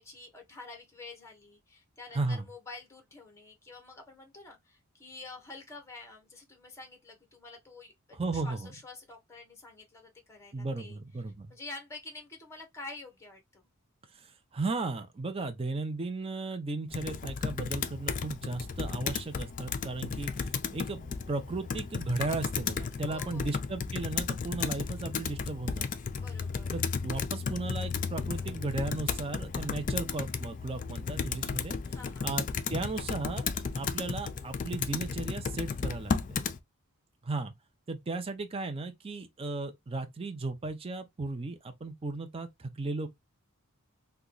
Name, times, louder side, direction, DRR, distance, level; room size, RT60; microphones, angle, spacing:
voice 1, 0.0-11.0 11.5-13.6 23.1-23.6 26.1-26.7 31.9-32.3, left 3 dB, 10° left, 0.9 m, -48 dB
voice 2, 2.1-2.5 8.1-8.7 10.5-11.5 14.1-25.9 26.7-31.8 32.2-32.4 32.7-36.4 37.2-37.5 37.9-43.1, right 3 dB, 25° right, 0.4 m, -35 dB
Computer keyboard, 16.9-36.6, left 5 dB, 35° left, 0.3 m, -34 dB
2.9 x 2.2 x 3.7 m
head